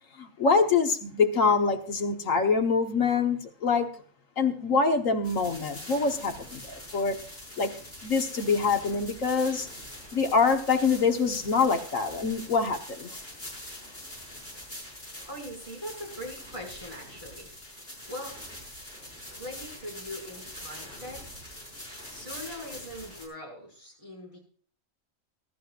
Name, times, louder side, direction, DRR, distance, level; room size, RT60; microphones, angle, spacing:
voice 1, 0.2-3.9 4.4-7.2 7.6-7.7 8.0-9.7 10.1-13.1, left 4 dB, 75° left, 5 dB, 1.8 m, -25 dB
sound 1, 5.2-23.3, left 1 dB, 45° left, 6.2 m, -44 dB
voice 2, 15.3-17.5 17.8-18.4 19.4-21.4 22.1-24.4, equal, 25° left, -2 dB, 5.8 m, -41 dB
21.5 x 12.0 x 2.5 m, 0.43 s
omnidirectional pair, 1.4 m